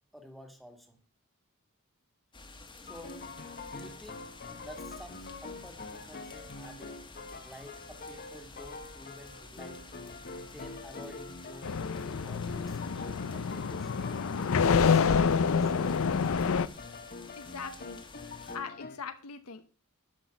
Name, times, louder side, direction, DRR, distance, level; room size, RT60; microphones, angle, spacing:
voice 1, 0.1-1.0 2.8-3.2 3.7-4.3 4.6-6.9 7.4-9.9 10.4-11.7 12.0-14.2 14.7-15.2 15.6-16.0 18.4-18.6, equal, ahead, 4 dB, 1.7 m, -51 dB
sound 1, 2.3-18.6, left 3 dB, 20° left, 1.3 m, -51 dB
sound 2, 2.9-19.0, left 3 dB, 45° left, 1.0 m, -45 dB
sound 3, 11.6-16.7, left 6 dB, 65° left, 0.5 m, -27 dB
voice 2, 17.4-18.0 18.5-19.7, left 5 dB, 85° left, 9 dB, 0.9 m, -41 dB
12.0 x 6.1 x 5.2 m, 0.38 s
head